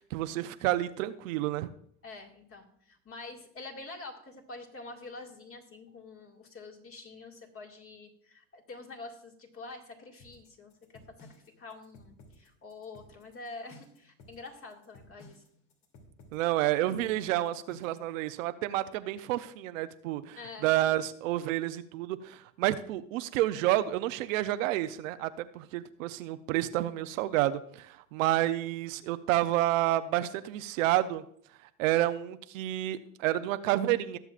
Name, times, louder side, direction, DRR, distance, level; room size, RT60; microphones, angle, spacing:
voice 1, 0.0-1.7 16.3-31.2 31.8-34.2, right 14 dB, 90° right, 11 dB, 0.7 m, -29 dB
voice 2, 2.0-11.3 11.6-15.4 20.4-20.7, left 3 dB, 35° left, 2 dB, 2.1 m, -46 dB
sound 1, 10.2-18.1, left 1 dB, 65° left, 2.8 m, -56 dB
20.0 x 6.9 x 2.5 m, 0.66 s
supercardioid pair, 95°, 38 cm